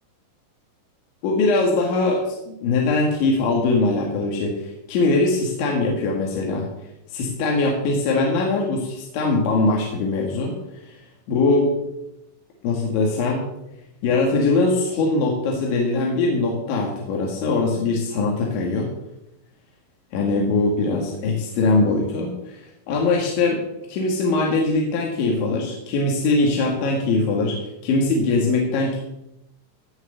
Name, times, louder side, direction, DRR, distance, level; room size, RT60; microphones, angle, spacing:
voice 1, 1.2-6.7 7.1-10.6 11.3-11.7 12.6-13.4 14.0-18.9 20.1-23.6 23.9-27.6 27.8-29.0, left 3 dB, 80° left, -1 dB, 4.4 m, -21 dB
17.0 x 6.4 x 8.2 m, 0.87 s
omnidirectional pair, 5.3 m